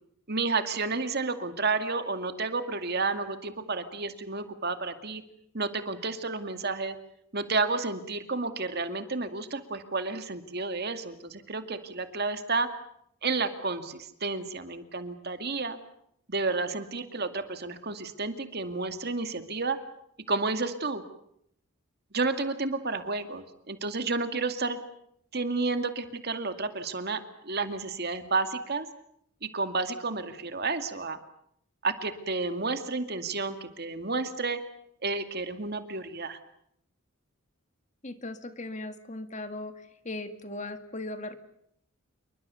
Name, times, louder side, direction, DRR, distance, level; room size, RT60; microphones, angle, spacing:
voice 1, 0.3-5.2 5.5-7.0 7.3-12.7 13.2-15.8 16.3-19.8 20.3-21.0 22.1-24.8 25.3-28.9 29.5-31.2 31.8-34.6 35.0-36.4, right 3 dB, 50° right, 8 dB, 2.3 m, -31 dB
voice 2, 38.0-39.7 40.0-41.4, left 2 dB, 35° left, 9 dB, 2.0 m, -38 dB
28.0 x 23.5 x 7.0 m, 0.72 s
head